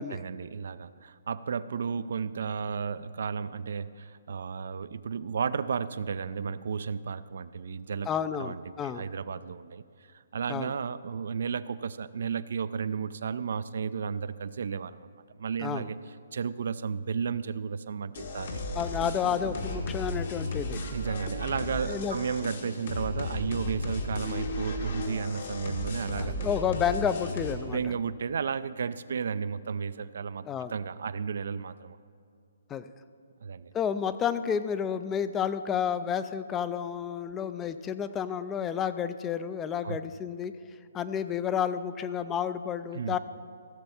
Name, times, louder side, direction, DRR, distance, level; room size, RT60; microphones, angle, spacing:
voice 1, 0.1-8.1 8.4-9.8 10.3-15.1 15.4-16.0 16.3-18.6 20.9-26.4 27.7-32.0 33.4-33.7 39.8-40.0 42.9-43.2, right 6 dB, 65° right, 15 dB, 0.4 m, -33 dB
voice 2, 8.1-9.1 10.5-10.7 15.6-15.9 18.7-20.8 21.9-22.2 26.2-27.8 30.5-30.7 32.7-32.9 33.7-40.5 40.9-43.2, left 8 dB, 15° left, 13 dB, 0.4 m, -30 dB
sound 1, 18.2-27.5, left 1 dB, 60° left, 1.5 m, -34 dB
15.5 x 7.0 x 4.3 m, 2.4 s
figure-of-eight pair, 140°, 0 cm